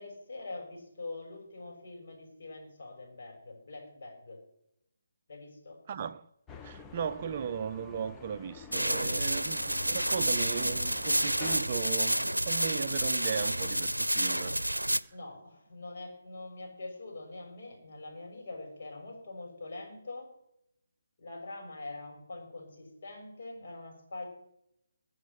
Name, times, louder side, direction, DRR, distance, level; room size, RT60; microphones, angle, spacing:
voice 1, 0.0-4.4 5.3-5.8 15.1-20.3 21.2-24.3, left 2 dB, 45° left, 6.6 m, -44 dB
voice 2, 5.9-6.3 6.6-14.6, right 7 dB, 30° right, 0.5 m, -37 dB
sound 1, 6.5-11.6, left 5 dB, 10° left, 0.8 m, -49 dB
sound 2, 8.7-15.0, right 1 dB, 90° right, 0.6 m, -29 dB
22.0 x 7.3 x 5.7 m
figure-of-eight pair, 145°, 0 cm